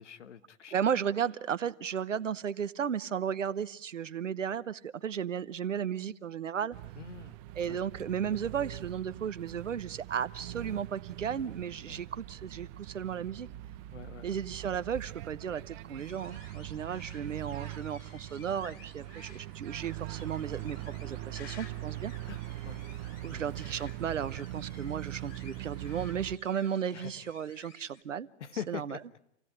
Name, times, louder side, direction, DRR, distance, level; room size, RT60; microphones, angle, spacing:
voice 1, 0.0-0.7 7.0-7.3 7.7-7.8 11.9-12.0 13.9-14.4 22.3-22.8 23.3-23.4 26.9-27.1 28.4-29.2, left 8 dB, 75° left, 13 dB, 1.6 m, -43 dB
voice 2, 0.7-6.8 7.5-13.5 14.2-22.1 23.2-28.3 28.7-29.0, right 8 dB, 85° right, 15 dB, 1.0 m, -34 dB
sound 1, 6.7-26.4, right 15 dB, 35° right, 0.9 m, -42 dB
sound 2, 16.0-28.0, left 6 dB, 55° left, 3.5 m, -55 dB
28.0 x 16.5 x 9.8 m, 0.77 s
hypercardioid pair, 120°, 36 cm